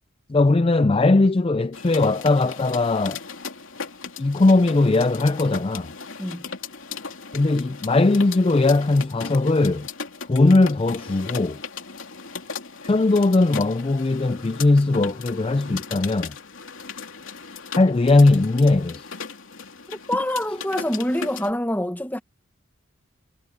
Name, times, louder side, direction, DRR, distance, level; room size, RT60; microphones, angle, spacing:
voice 1, 0.3-3.2 4.2-5.9 7.3-9.9 10.3-11.6 12.8-16.3 17.7-19.0, left 2 dB, 25° left, 0.4 m, -19 dB
sound 1, 1.7-21.5, left 5 dB, 70° left, 2.9 m, -37 dB
voice 2, 19.9-22.2, left 1 dB, 10° left, 1.2 m, -26 dB
head